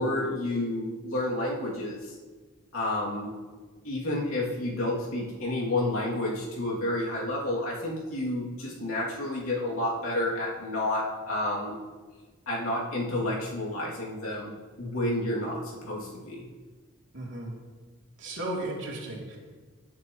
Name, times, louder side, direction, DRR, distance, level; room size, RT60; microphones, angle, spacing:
voice 1, 0.0-2.2 2.7-3.3 3.8-11.8 12.5-14.5 14.8-16.5, left 1 dB, 70° left, -4 dB, 2.7 m, -30 dB
voice 2, 17.1-17.5 18.2-19.4, right 1 dB, 60° right, -3 dB, 3.0 m, -35 dB
18.0 x 8.3 x 3.1 m, 1.4 s
head